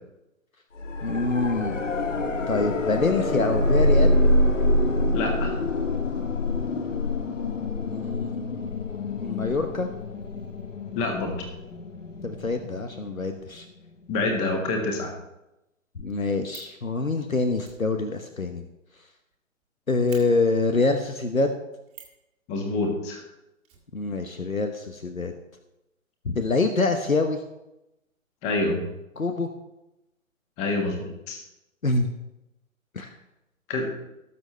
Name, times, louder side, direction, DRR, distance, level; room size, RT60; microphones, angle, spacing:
sound 1, 0.8-13.6 16.0-16.1, left 1 dB, 65° left, 1.3 m, -26 dB
voice 1, 1.0-1.8 2.5-4.2 7.9-9.9 12.2-13.7 16.0-18.6 19.9-21.5 23.9-25.3 26.2-27.4 29.2-29.5 31.8-32.1 32.9-33.1, left 3 dB, 80° left, 7 dB, 1.2 m, -25 dB
voice 2, 5.1-5.6 11.0-11.5 14.1-15.1 22.5-23.2 28.4-28.8 30.6-31.4 33.7-33.9, left 2 dB, 15° left, 3 dB, 1.6 m, -27 dB
Fire, 16.1-16.8 17.6-19.3 19.6-19.7 20.1-20.2 21.9-22.2 23.6-24.5 24.8-24.9 25.1-25.2, right 8 dB, 15° right, 1.7 m, -48 dB
18.0 x 6.9 x 3.3 m, 0.91 s
figure-of-eight pair, 130°, 41 cm